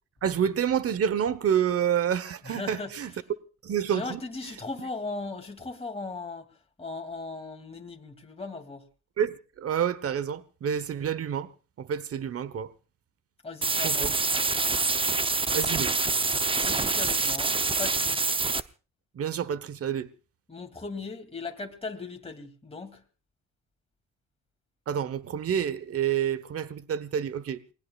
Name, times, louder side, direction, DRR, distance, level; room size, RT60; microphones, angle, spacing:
voice 1, 0.2-3.1 3.6-4.2 9.2-11.5 11.8-12.7 13.8-14.1 15.5-15.9 19.1-20.1 24.9-27.6, right 8 dB, 50° right, 1.2 m, -28 dB
voice 2, 2.5-2.9 3.9-6.5 6.8-8.8 13.4-14.1 16.5-18.3 20.5-23.0, left 3 dB, 20° left, 2.7 m, -38 dB
sound 1, 13.6-18.6, right 3 dB, 15° right, 0.8 m, -26 dB
28.0 x 20.0 x 2.5 m
cardioid pair, 90°, 30 cm